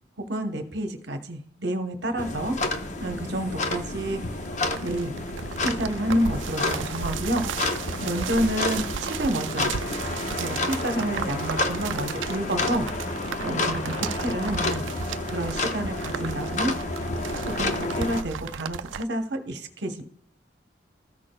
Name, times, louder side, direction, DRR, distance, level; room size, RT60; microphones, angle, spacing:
voice 1, 0.3-2.5 3.0-4.2 4.8-5.1 5.6-9.7 10.4-12.9 13.4-14.8 15.3-16.7 17.5-20.0, right 1 dB, 60° right, 6 dB, 1.0 m, -29 dB
sound 1, 2.2-18.2, left 2 dB, 40° left, 0.7 m, -30 dB
sound 2, 3.3-19.0, right 7 dB, 85° right, 0.4 m, -35 dB
14.0 x 6.1 x 2.2 m, 0.68 s
head